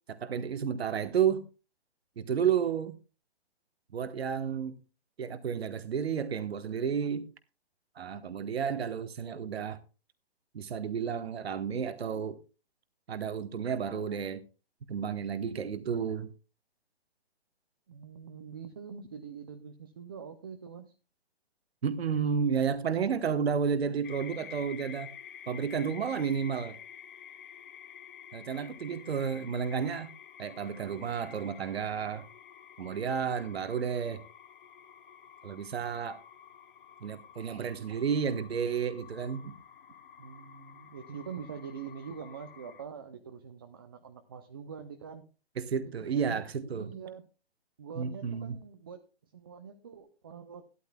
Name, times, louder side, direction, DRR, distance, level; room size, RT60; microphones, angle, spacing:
voice 1, 0.1-1.4 2.2-3.0 3.9-4.8 5.2-7.3 8.0-9.8 10.5-12.4 13.1-14.4 14.9-16.3 21.8-25.1 25.5-26.8 28.3-30.1 30.4-32.3 32.8-34.2 35.4-36.2 37.0-39.6 45.6-46.9 48.0-48.6, right 7 dB, 75° right, 1.2 m, -31 dB
voice 2, 17.9-20.9 40.2-45.2 46.0-47.3 47.8-49.1 49.3-50.6, right 7 dB, 20° right, 0.5 m, -44 dB
sound 1, 24.0-42.8, left 9 dB, 50° left, 1.0 m, -50 dB
14.5 x 12.5 x 2.2 m
hypercardioid pair, 160°, 32 cm